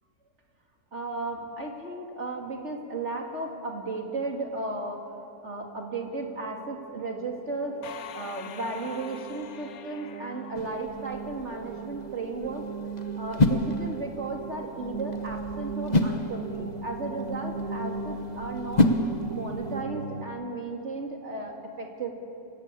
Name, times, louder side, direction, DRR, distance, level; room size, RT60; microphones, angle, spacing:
voice 1, 0.9-12.6 13.2-19.0 19.3-22.1, right 2 dB, 45° right, 2 dB, 3.3 m, -35 dB
sound 1, 4.6-20.2, right 5 dB, 65° right, 2.0 m, -38 dB
sound 2, 7.8-11.5, left 9 dB, 65° left, 1.3 m, -45 dB
sound 3, 10.5-19.8, left 2 dB, 30° left, 1.0 m, -30 dB
28.5 x 17.0 x 8.6 m, 2.5 s
omnidirectional pair, 1.7 m